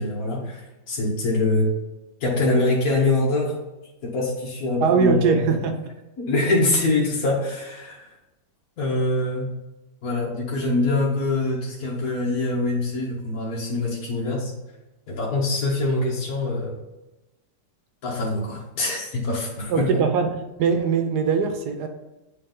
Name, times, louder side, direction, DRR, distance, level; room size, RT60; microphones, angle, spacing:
voice 1, 0.0-1.7 2.2-3.5 4.0-5.5 6.2-8.1 8.8-9.5 10.0-14.5 15.1-16.7 18.0-20.0, left 2 dB, 55° left, -4 dB, 1.5 m, -24 dB
voice 2, 4.8-5.8 19.7-20.3 20.6-21.9, right 6 dB, 70° right, 6 dB, 1.1 m, -21 dB
8.5 x 3.1 x 3.7 m, 1.0 s
omnidirectional pair, 1.9 m